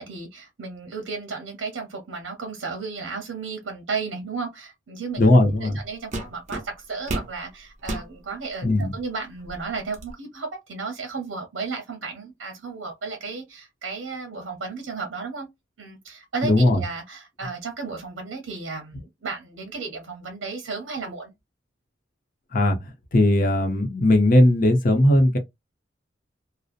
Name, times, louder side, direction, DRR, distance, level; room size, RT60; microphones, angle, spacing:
voice 1, 0.0-5.2 5.6-8.7 8.9-15.5 15.8-21.3, right 4 dB, 75° right, 0.7 m, -34 dB
voice 2, 5.2-5.8 8.6-9.0 16.4-16.8 22.5-25.4, left 1 dB, 45° left, 0.6 m, -18 dB
sound 1, 5.4-5.6 6.1-7.4 7.8-8.1 8.8-8.9 9.4-10.1, right 2 dB, 40° right, 0.7 m, -32 dB
2.7 x 2.0 x 2.4 m
head